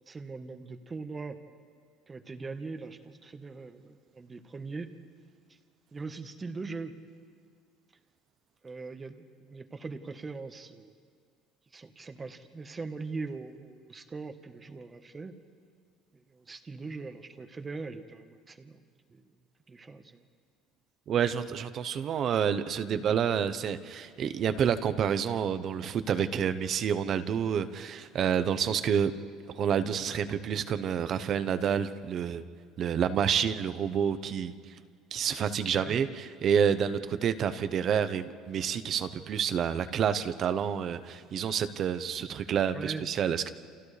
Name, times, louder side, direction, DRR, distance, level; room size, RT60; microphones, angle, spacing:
voice 1, 0.1-1.4 2.1-4.9 5.5-5.6 5.9-6.9 8.6-10.9 11.7-15.3 16.1-18.8 19.1-19.3 19.7-20.2 35.7-36.1 42.7-43.0, right 4 dB, 20° right, 8 dB, 1.2 m, -41 dB
voice 2, 21.1-29.1 29.5-32.4 32.8-34.5 35.1-43.5, right 8 dB, 40° right, 11 dB, 0.9 m, -28 dB
29.5 x 28.5 x 3.4 m, 2.1 s
cardioid pair, 135°, 0 cm